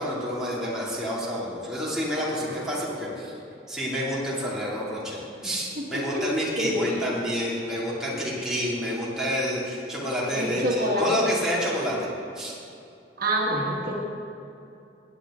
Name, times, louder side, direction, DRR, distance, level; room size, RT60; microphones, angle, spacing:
voice 1, 0.0-3.3 3.7-12.0 12.3-12.5, equal, 5° right, -7 dB, 2.6 m, -28 dB
voice 2, 5.4-6.2 6.6-6.8 10.3-11.2 13.2-13.9, equal, 55° right, -3 dB, 1.7 m, -27 dB
17.0 x 9.0 x 3.8 m, 2.6 s
head